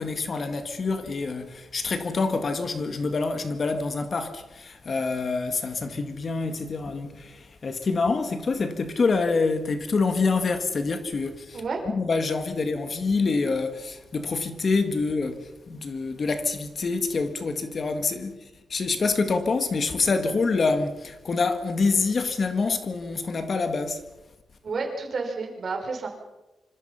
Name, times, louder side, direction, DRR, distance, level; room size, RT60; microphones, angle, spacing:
voice 1, 0.0-24.1, left 4 dB, 40° left, 2.0 m, -26 dB
voice 2, 11.5-11.9 24.6-26.1, right 4 dB, 45° right, 5.4 m, -30 dB
26.5 x 26.0 x 5.8 m
wide cardioid pair, 150°, 0 cm